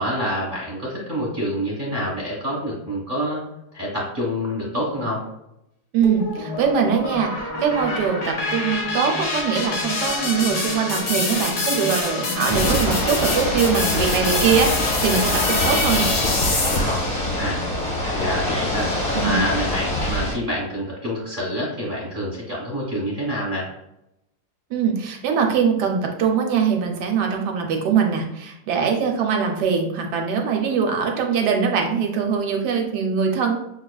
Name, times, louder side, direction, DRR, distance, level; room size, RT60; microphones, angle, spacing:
voice 1, 0.0-3.4 3.7-5.2 12.5-12.8 17.4-17.6 18.1-23.7, equal, 30° right, -3 dB, 1.2 m, -27 dB
voice 2, 5.9-16.1 19.1-19.4 24.7-33.6, right 6 dB, 70° right, 3 dB, 1.1 m, -22 dB
sound 1, 6.0-17.2, left 3 dB, 55° left, 0.9 m, -26 dB
Ocean / Boat Water vehicle, 12.5-20.3, left 1 dB, 25° left, 0.8 m, -24 dB
5.9 x 2.4 x 2.3 m, 0.82 s
omnidirectional pair, 2.0 m